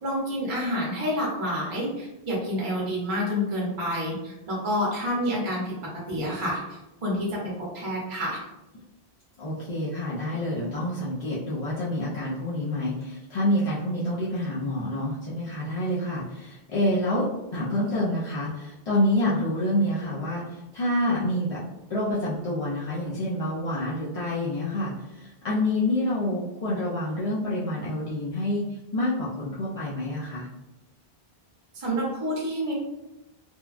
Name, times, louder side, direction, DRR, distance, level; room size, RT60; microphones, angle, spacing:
voice 1, 0.0-5.8 6.1-8.4 31.7-32.7, equal, 35° right, -4 dB, 0.7 m, -28 dB
voice 2, 9.4-17.2 17.5-21.6 21.9-30.5, left 1 dB, 50° left, -8 dB, 0.4 m, -27 dB
3.0 x 2.2 x 2.4 m, 0.98 s
omnidirectional pair, 1.1 m